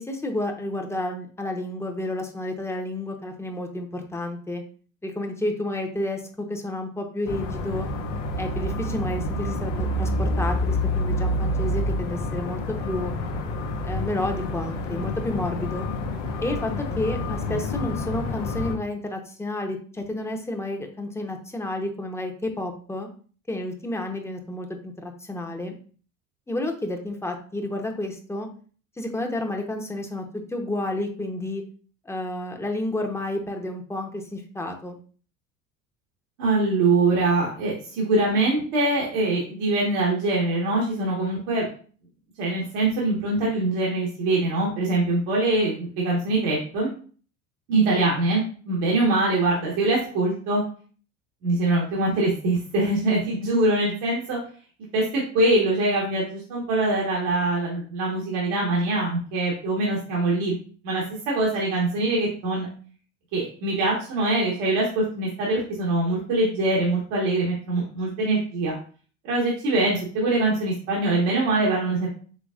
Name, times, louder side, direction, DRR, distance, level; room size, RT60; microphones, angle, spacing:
voice 1, 0.0-4.6 5.0-7.9 8.4-13.2 13.8-15.9 16.4-23.1 23.5-25.7 26.5-28.5 29.0-31.6 32.0-35.0, left 1 dB, 5° left, 3 dB, 0.8 m, -30 dB
sound 1, 7.3-18.8, left 1 dB, 80° left, 0.9 m, -28 dB
voice 2, 36.4-41.7 42.4-46.9 47.7-50.6 51.4-54.4 54.9-60.5 60.8-62.7 63.3-68.7 69.3-72.1, right 2 dB, 75° right, -4 dB, 1.5 m, -23 dB
5.0 x 3.4 x 2.4 m, 0.42 s
hypercardioid pair, 80°, 37 cm